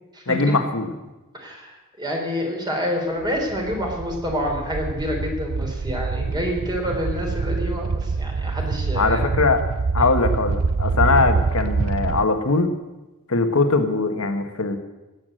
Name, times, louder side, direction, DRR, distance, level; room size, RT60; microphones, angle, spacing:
voice 1, 0.3-0.9 8.9-9.6 9.9-12.7 13.3-14.8, left 3 dB, 70° left, 7 dB, 1.5 m, -21 dB
voice 2, 1.3-9.2 10.0-10.1, equal, 20° right, 1 dB, 3.5 m, -28 dB
sound 1, 3.2-12.3, right 4 dB, 70° right, 0.6 m, -25 dB
19.0 x 8.5 x 7.7 m, 1.1 s
head